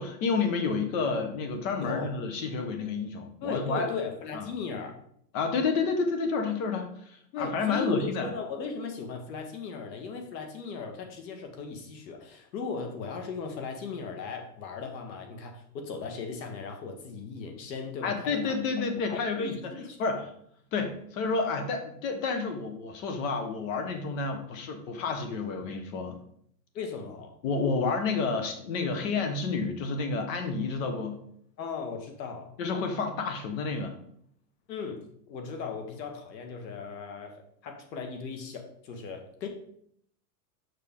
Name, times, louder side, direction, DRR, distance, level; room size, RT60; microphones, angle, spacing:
voice 1, 0.0-3.9 4.3-4.4 5.3-8.3 18.0-19.7 20.0-20.2 20.7-26.1 27.4-31.2 32.6-33.9, left 4 dB, 50° left, 6 dB, 1.4 m, -30 dB
voice 2, 1.8-2.1 3.4-4.9 7.3-18.6 19.1-20.2 26.7-27.4 31.6-32.5 34.7-39.5, left 5 dB, 85° left, 4 dB, 1.8 m, -37 dB
6.9 x 5.6 x 3.7 m, 0.67 s
supercardioid pair, 160°, 50 cm